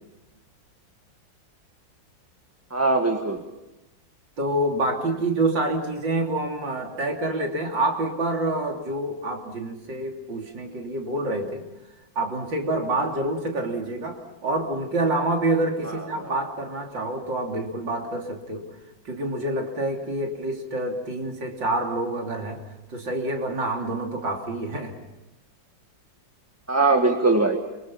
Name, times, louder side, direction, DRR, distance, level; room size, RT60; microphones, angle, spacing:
voice 1, 2.7-3.4 15.8-16.3 26.7-27.6, right 3 dB, 10° right, 3 dB, 1.6 m, -21 dB
voice 2, 4.4-11.6 12.2-18.7 19.1-22.6 22.9-24.9, right 2 dB, 75° right, 1 dB, 3.9 m, -27 dB
29.5 x 25.0 x 5.7 m, 0.96 s
omnidirectional pair, 2.1 m